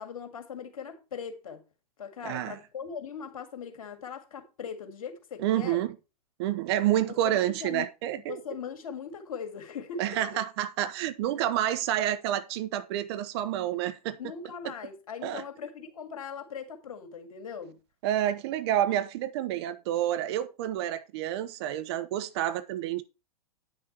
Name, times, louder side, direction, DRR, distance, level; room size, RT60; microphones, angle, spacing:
voice 1, 0.0-1.6 2.0-5.8 7.1-7.9 8.3-10.4 14.2-17.8, left 6 dB, 60° left, 2.0 m, -40 dB
voice 2, 2.2-2.6 5.4-5.9 6.4-8.4 10.0-14.2 15.2-15.4 18.0-23.0, right 12 dB, 40° right, 0.9 m, -29 dB
9.4 x 6.6 x 4.3 m
figure-of-eight pair, 105°, 20 cm